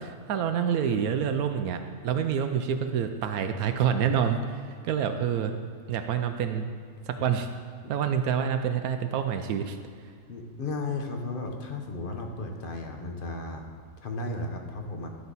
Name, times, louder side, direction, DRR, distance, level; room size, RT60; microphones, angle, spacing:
voice 1, 0.0-5.5 5.9-6.7 7.1-7.5 7.9-9.8, right 8 dB, 80° right, 7 dB, 1.1 m, -27 dB
voice 2, 10.3-13.6 14.0-15.1, left 2 dB, 40° left, 3 dB, 1.0 m, -34 dB
12.5 x 5.7 x 4.1 m, 2.1 s
omnidirectional pair, 1.5 m